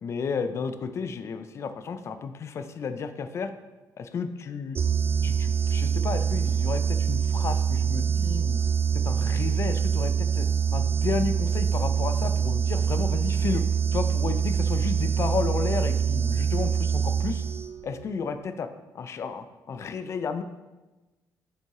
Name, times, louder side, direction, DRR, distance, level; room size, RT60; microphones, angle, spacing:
voice 1, 0.0-3.5 4.0-4.8 5.2-8.6 9.0-13.6 13.9-17.4 17.8-18.7 18.9-20.4, left 5 dB, 40° left, 9 dB, 0.4 m, -32 dB
sound 1, 4.8-17.9, right 7 dB, 30° right, 0.4 m, -25 dB
6.1 x 5.4 x 3.6 m, 1.1 s
cardioid pair, 160°, 8 cm